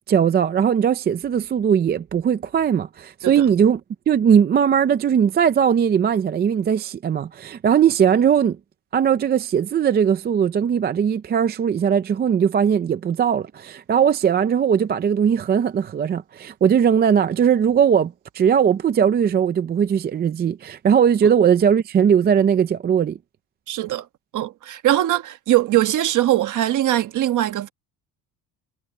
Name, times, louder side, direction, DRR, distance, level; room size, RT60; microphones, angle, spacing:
voice 1, 0.1-3.8 4.1-8.6 8.9-23.2, right 8 dB, 25° right, 0.5 m, -19 dB
voice 2, 23.7-24.1 24.3-27.7, right 13 dB, 45° right, 1.3 m, -21 dB
cardioid pair, 170°, 41 cm